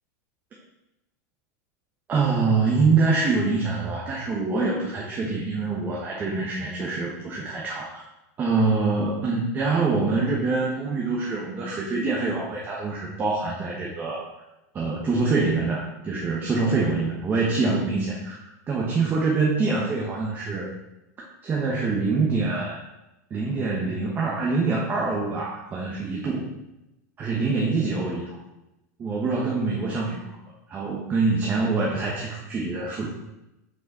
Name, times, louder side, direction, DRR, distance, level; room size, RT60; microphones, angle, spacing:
voice 1, 2.1-8.1 8.4-14.2 14.7-20.7 21.4-22.8 23.3-26.6 27.2-28.4 29.0-30.4 30.7-33.1, right 3 dB, 20° right, -3 dB, 1.0 m, -25 dB
6.0 x 5.2 x 4.2 m, 0.94 s
supercardioid pair, 150°, 9 cm